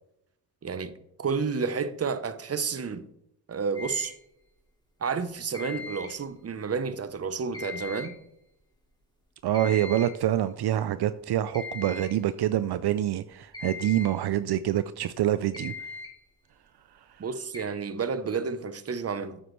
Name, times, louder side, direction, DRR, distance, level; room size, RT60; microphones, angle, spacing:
voice 1, 0.6-0.9 1.2-3.1 3.5-4.1 5.0-8.2 17.2-19.4, right 5 dB, 35° right, 0.8 m, -30 dB
sound 1, 3.7-4.2 5.5-6.2 7.5-8.2 9.5-10.2 11.5-12.2 13.5-14.2 15.5-16.2 17.5-17.6, left 4 dB, 10° left, 2.6 m, -40 dB
voice 2, 9.4-15.7 17.1-17.2, right 12 dB, 70° right, 0.5 m, -26 dB
9.7 x 8.0 x 3.2 m
cardioid pair, 80°, 41 cm